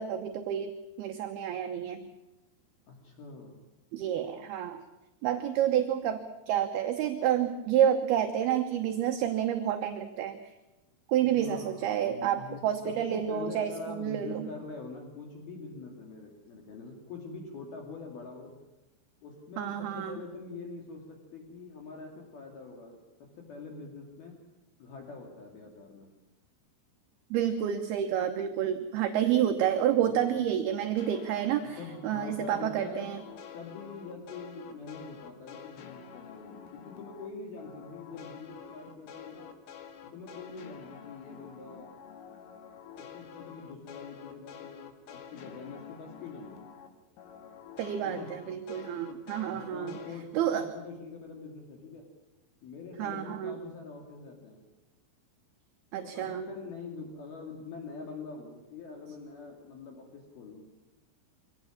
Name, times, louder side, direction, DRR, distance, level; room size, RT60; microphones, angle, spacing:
voice 1, 0.0-2.1 3.9-4.8 5.2-10.5 11.1-14.5 19.6-20.2 27.3-33.2 47.8-50.0 50.3-50.7 53.0-53.6 55.9-56.4, right 10 dB, 70° right, 5 dB, 2.5 m, -29 dB
voice 2, 2.9-3.6 11.2-18.5 19.2-23.0 23.4-24.4 24.8-26.1 30.1-30.4 31.8-33.1 33.5-39.5 40.1-41.9 43.0-46.6 48.0-48.3 49.5-52.0 52.6-54.6 56.0-60.6, left 4 dB, 55° left, 1 dB, 4.1 m, -44 dB
sound 1, 31.0-37.3 37.6-46.9 47.2-50.2, left 8 dB, 85° left, 4.7 m, -49 dB
24.5 x 18.0 x 7.3 m, 1.0 s
omnidirectional pair, 5.7 m